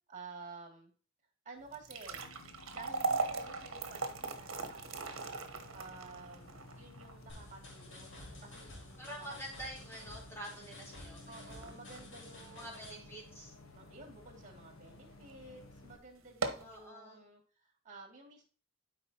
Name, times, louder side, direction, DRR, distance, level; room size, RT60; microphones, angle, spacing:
voice 1, 0.1-0.9 1.4-2.3 2.6-5.1 5.7-9.4 11.3-13.1 13.7-18.4, right 3 dB, 40° right, 1 dB, 2.6 m, -53 dB
sound 1, 1.6-13.9 14.4-14.5 15.2-15.3 15.7-15.8 16.2-16.8, right 3 dB, 75° right, 1.1 m, -40 dB
Bus, 2.1-16.0, left 2 dB, 85° left, 0.8 m, -56 dB
sound 2, 7.3-12.9, left 2 dB, 65° left, 2.5 m, -52 dB
voice 2, 9.0-11.5 12.5-13.5 16.6-17.2, equal, 15° left, -3 dB, 3.6 m, -47 dB
12.0 x 5.1 x 2.9 m, 0.40 s
head